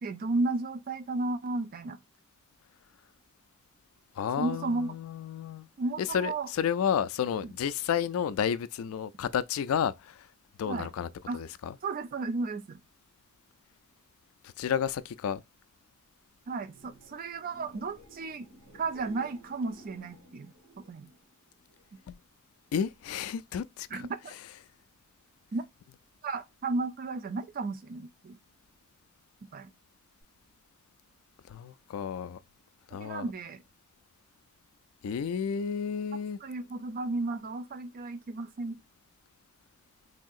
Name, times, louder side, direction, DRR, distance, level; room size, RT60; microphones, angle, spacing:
voice 1, 0.0-2.0 4.4-5.0 5.8-6.5 10.6-10.9 11.3-11.4 11.8-12.8 16.5-18.5 18.7-20.5 20.9-21.1 23.9-24.3 25.5-25.6 26.2-28.4 29.5-29.7 32.9-33.6 36.4-38.8, right 3 dB, 45° right, 0.4 m, -33 dB
voice 2, 4.2-5.7 6.0-10.3 10.6-11.1 11.3-11.8 14.6-15.4 22.1-22.2 22.7-24.1 31.5-32.4 32.9-33.3 35.0-36.4, left 8 dB, 75° left, 0.3 m, -31 dB
sound 1, 16.5-22.2 22.6-23.1 30.2-30.3, right 1 dB, 85° right, 1.4 m, -55 dB
3.5 x 2.7 x 2.3 m
head